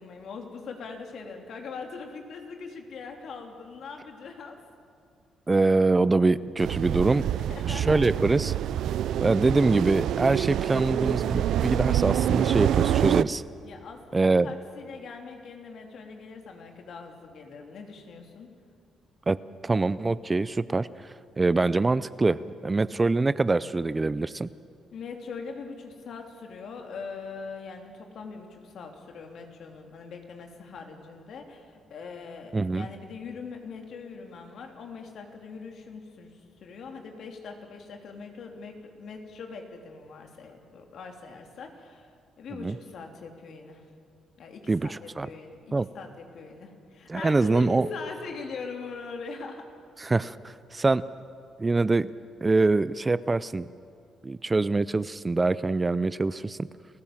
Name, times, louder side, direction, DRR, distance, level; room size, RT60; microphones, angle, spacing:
voice 1, 0.0-4.6 7.5-8.0 13.6-18.5 24.9-42.1 42.4-43.8 44.4-49.7, left 4 dB, 65° left, 3 dB, 3.2 m, -41 dB
voice 2, 5.5-7.3 7.7-8.5 9.2-13.4 14.1-14.5 19.3-20.9 21.4-24.5 32.5-32.9 42.6-42.7 44.7-45.3 45.7-45.9 47.1-47.9 50.0-51.0 51.6-52.1 52.4-53.7 54.2-56.6, right 3 dB, 25° right, 17 dB, 0.5 m, -24 dB
sound 1, 6.6-13.2, right 11 dB, 75° right, 0.5 m, -26 dB
30.0 x 15.5 x 7.4 m, 2.3 s
cardioid pair, 90°, 0 cm